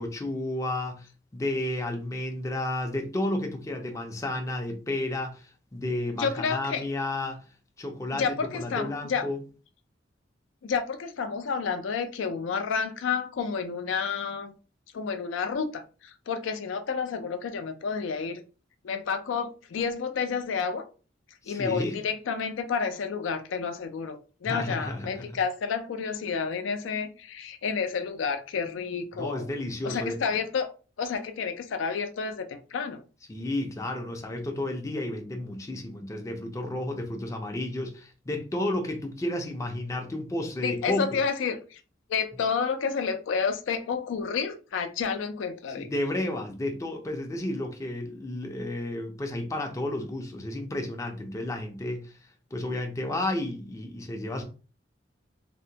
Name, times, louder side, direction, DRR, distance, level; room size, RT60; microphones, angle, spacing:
voice 1, 0.0-7.4 7.8-9.4 21.4-22.0 24.4-25.2 29.1-30.2 33.3-41.1 45.8-52.1 52.5-54.4, left 1 dB, 15° left, 0.4 m, -32 dB
voice 2, 6.2-6.8 8.2-9.3 10.6-14.5 14.9-18.4 18.8-20.9 21.5-29.5 29.8-30.7 31.0-33.0 40.6-41.8 42.1-45.9, left 5 dB, 90° left, 0.4 m, -30 dB
2.7 x 2.1 x 2.7 m
head